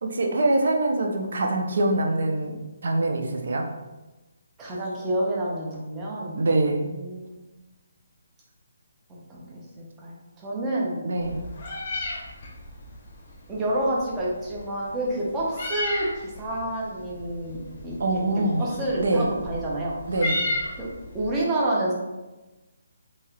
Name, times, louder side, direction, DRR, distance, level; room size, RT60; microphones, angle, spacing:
voice 1, 0.0-2.5 2.8-3.7 6.4-6.8 11.0-11.4 18.0-18.7 19.0-19.3 20.1-20.4, right 2 dB, 65° right, 2 dB, 0.5 m, -24 dB
voice 2, 4.6-6.4 6.6-7.4 9.3-9.6 10.0-11.0 13.5-18.2 18.6-19.9 20.8-20.9 21.1-21.9, right 1 dB, 15° right, -4 dB, 0.6 m, -28 dB
Meow, 11.2-21.3, left 2 dB, 40° left, 0.6 m, -35 dB
3.0 x 2.8 x 2.3 m, 1.1 s
hypercardioid pair, 165°, 0 cm